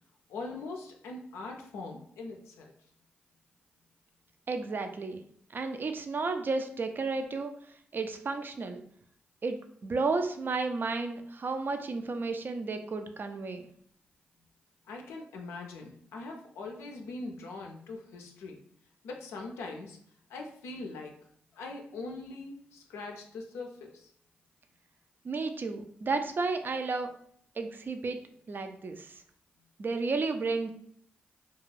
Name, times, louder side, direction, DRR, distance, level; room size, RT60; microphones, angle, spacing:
voice 1, 0.3-2.7 14.9-18.6 19.0-20.0 20.3-21.1 21.5-24.1, left 3 dB, 90° left, 1 dB, 0.4 m, -42 dB
voice 2, 4.5-5.2 5.5-7.5 7.9-8.8 9.4-13.6 25.2-27.1 27.6-28.2 28.5-29.2 29.8-30.7, right 3 dB, 50° right, 7 dB, 0.4 m, -32 dB
2.4 x 2.3 x 3.2 m, 0.63 s
supercardioid pair, 40°, 4 cm